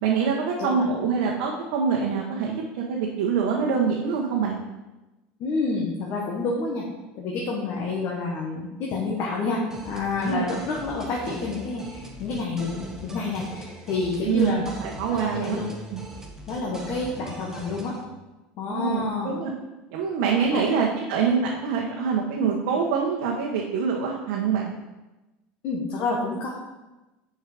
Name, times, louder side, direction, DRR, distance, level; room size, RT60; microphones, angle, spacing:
voice 1, 0.0-4.6 10.2-10.5 14.2-15.6 15.9-16.0 18.7-19.5 19.9-24.7, right 6 dB, 80° right, -2 dB, 1.0 m, -25 dB
voice 2, 5.4-6.9 7.1-14.7 15.1-15.7 16.5-17.9 18.6-19.3 20.4-20.6 25.6-26.6, left 3 dB, 55° left, -2 dB, 1.3 m, -29 dB
sound 1, 9.7-18.0, right 1 dB, 10° right, 1.0 m, -40 dB
6.6 x 4.7 x 5.0 m, 1.1 s
supercardioid pair, 115°, 5 cm